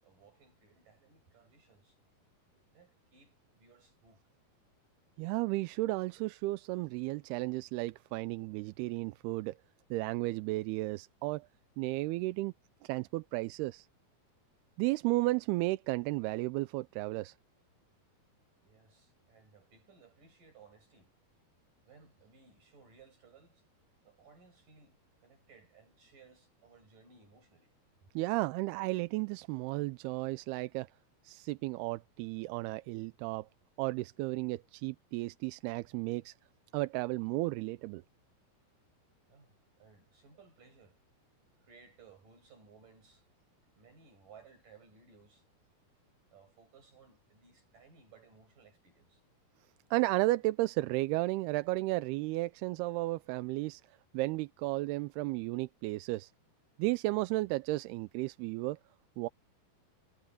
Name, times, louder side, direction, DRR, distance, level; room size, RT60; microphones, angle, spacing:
voice 1, 0.0-2.0 2.7-4.2 5.2-5.3 18.6-21.1 21.9-23.6 24.0-27.7 39.3-41.0 41.6-43.3 43.8-45.5 46.3-49.2, right 5 dB, 55° right, 9.2 m, -61 dB
voice 2, 5.2-9.5 9.9-11.5 11.8-12.5 12.8-13.9 14.8-17.3 28.2-30.9 31.3-33.5 33.8-36.3 36.7-38.0 49.9-53.8 54.1-56.3 56.8-58.8 59.2-59.3, right 20 dB, 90° right, 2.6 m, -33 dB
omnidirectional pair, 4.5 m